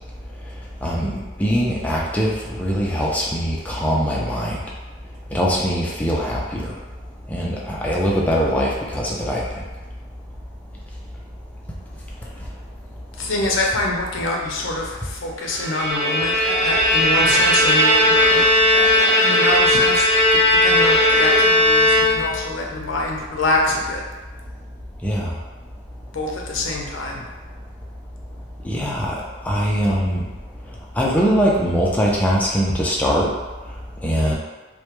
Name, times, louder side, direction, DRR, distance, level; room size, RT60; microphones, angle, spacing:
voice 1, 1.4-4.6 5.3-6.7 7.3-9.4 25.0-25.3 28.6-29.1 29.5-30.2 31.0-33.3 34.0-34.3, equal, 10° left, -4 dB, 0.3 m, -21 dB
voice 2, 13.2-18.4 18.7-20.0 20.3-24.0 26.1-27.3, left 2 dB, 70° left, -1 dB, 0.5 m, -25 dB
Bowed string instrument, 15.5-22.5, left 1 dB, 35° right, 1.1 m, -17 dB
2.1 x 2.1 x 2.9 m, 1.2 s
head